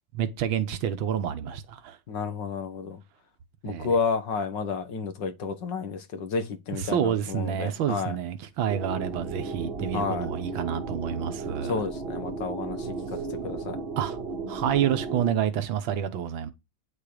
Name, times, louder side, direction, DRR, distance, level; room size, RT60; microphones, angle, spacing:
voice 1, 0.1-2.0 3.7-3.9 6.7-11.8 14.0-14.2 14.5-16.5, right 9 dB, 85° right, 1.9 m, -28 dB
voice 2, 2.1-3.0 3.6-8.2 9.9-10.3 11.6-13.8, left 5 dB, 65° left, 2.1 m, -31 dB
sound 1, 8.7-15.3, right 4 dB, 35° right, 1.2 m, -34 dB
9.8 x 7.3 x 5.1 m
omnidirectional pair, 2.1 m